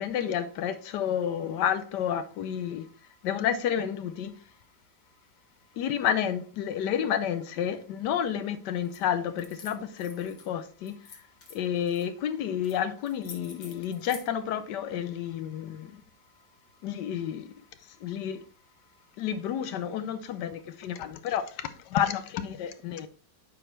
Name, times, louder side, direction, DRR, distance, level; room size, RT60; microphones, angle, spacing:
voice 1, 0.0-2.9 3.2-4.3 5.8-11.0 11.5-15.9 16.8-17.5 18.0-18.4 19.2-23.1, left 9 dB, 75° left, 1.1 m, -30 dB
sound 1, 8.9-9.0 9.4-10.5 10.9-12.1 12.6-12.8 13.0-14.3, left 5 dB, 50° left, 1.6 m, -48 dB
8.6 x 5.0 x 3.2 m
omnidirectional pair, 2.0 m